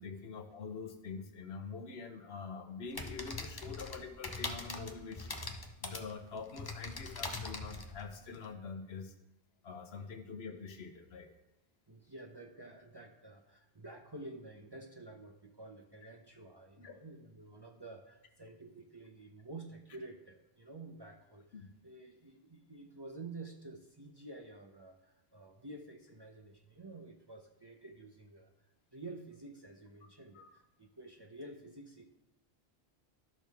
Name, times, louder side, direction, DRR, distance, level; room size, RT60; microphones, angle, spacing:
voice 1, 0.0-5.3 5.8-9.1 9.6-11.3 16.8-16.9 21.5-21.7 30.3-30.5, left 5 dB, 70° left, 7 dB, 1.1 m, -45 dB
sound 1, 2.9-8.5, left 3 dB, 25° left, 0.6 m, -42 dB
voice 2, 11.9-28.5 28.9-32.1, right 2 dB, 25° right, 1 dB, 0.7 m, -50 dB
12.0 x 6.1 x 3.5 m, 0.91 s
omnidirectional pair, 1.1 m